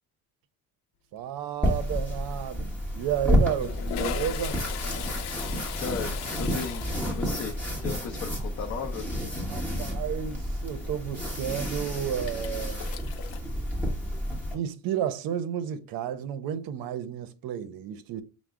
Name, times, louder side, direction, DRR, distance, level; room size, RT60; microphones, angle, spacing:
voice 1, 1.1-4.6 9.4-12.8 14.5-18.2, right 9 dB, 65° right, 0.6 m, -32 dB
Toilet flush, 1.2-1.6 1.8-2.0 2.9-13.4, left 9 dB, 85° left, 0.6 m, -40 dB
sound 1, 1.6-14.5, equal, 5° left, 1.2 m, -30 dB
voice 2, 5.8-7.6 7.8-9.0, left 6 dB, 40° left, 0.6 m, -35 dB
5.9 x 2.1 x 3.5 m
cardioid pair, 165°, 38 cm